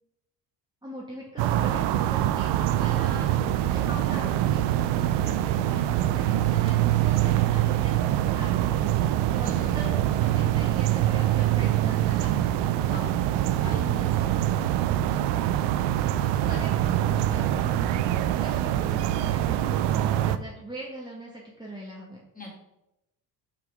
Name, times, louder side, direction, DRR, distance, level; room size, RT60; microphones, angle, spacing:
voice 1, 0.8-9.9 10.2-14.4 16.2-22.2, right 1 dB, 10° right, -4 dB, 1.8 m, -41 dB
sound 1, 1.4-20.4, right 12 dB, 85° right, 0.5 m, -24 dB
voice 2, 13.7-14.3 22.3-22.6, left 3 dB, 20° left, -3 dB, 3.1 m, -42 dB
6.0 x 5.8 x 5.0 m, 0.89 s
supercardioid pair, 70°, 40 cm